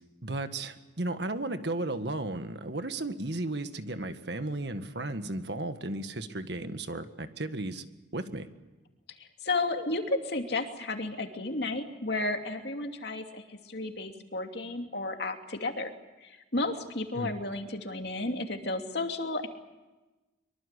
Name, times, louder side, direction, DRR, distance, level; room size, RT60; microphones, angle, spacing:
voice 1, 0.2-7.8 8.1-8.5 17.2-17.3, right 2 dB, 60° right, 9 dB, 1.8 m, -34 dB
voice 2, 9.2-15.9 16.2-19.5, left 2 dB, 60° left, 4 dB, 2.7 m, -33 dB
24.0 x 24.0 x 8.3 m, 1.1 s
head